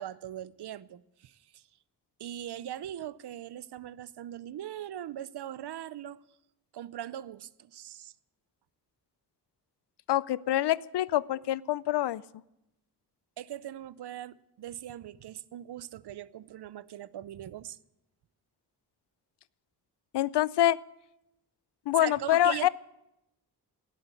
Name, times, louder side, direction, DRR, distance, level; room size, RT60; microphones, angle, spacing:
voice 1, 0.0-1.6 2.2-6.2 6.7-8.1 13.4-17.8 22.0-22.7, right 11 dB, 80° right, 0.7 m, -40 dB
voice 2, 10.1-12.2 20.1-20.8 21.9-22.7, left 13 dB, 85° left, 0.5 m, -26 dB
18.0 x 8.6 x 8.4 m
cardioid pair, 75°, 40 cm